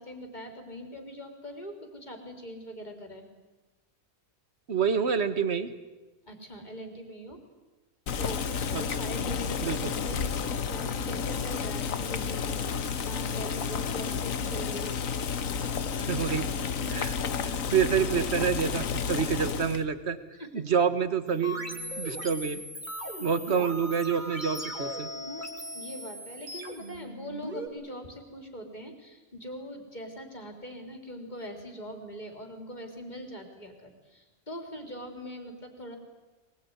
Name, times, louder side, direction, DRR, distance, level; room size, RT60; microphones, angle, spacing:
voice 1, 0.0-3.3 6.3-7.4 8.2-15.0 16.8-17.8 20.4-20.6 23.6-23.7 25.7-36.0, equal, 30° left, 4 dB, 4.0 m, -42 dB
voice 2, 4.7-5.7 8.7-8.8 9.6-9.9 16.1-16.5 16.9-17.1 17.7-20.2 20.5-21.6 22.0-22.6 23.2-25.1, right 6 dB, 50° right, 12 dB, 1.7 m, -27 dB
Boiling, 8.1-19.8, left 6 dB, 70° left, 1.5 m, -31 dB
sound 1, 21.3-27.7, equal, 30° right, 2.8 m, -38 dB
23.0 x 21.0 x 9.7 m, 1.1 s
omnidirectional pair, 1.5 m